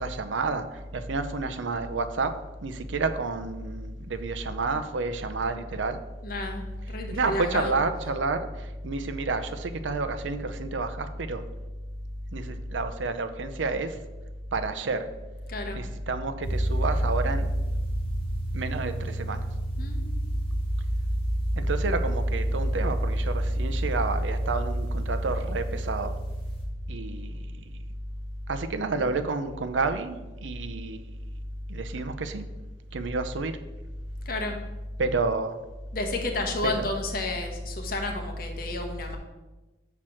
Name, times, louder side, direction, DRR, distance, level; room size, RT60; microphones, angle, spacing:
voice 1, 0.0-6.0 7.1-11.4 12.3-14.0 14.5-15.1 15.7-17.5 18.5-19.4 21.6-26.2 26.9-27.6 28.5-31.1 31.7-32.4 32.9-33.5 35.0-35.6 36.6-36.9, right 4 dB, 80° right, 10 dB, 0.6 m, -30 dB
voice 2, 6.2-7.8 15.5-15.8 19.8-20.2 34.3-34.6 35.9-39.2, left 2 dB, 50° left, 3 dB, 1.1 m, -31 dB
sound 1, 16.4-26.6, right 1 dB, 30° left, 2.0 m, -28 dB
6.0 x 4.4 x 6.2 m, 1.1 s
head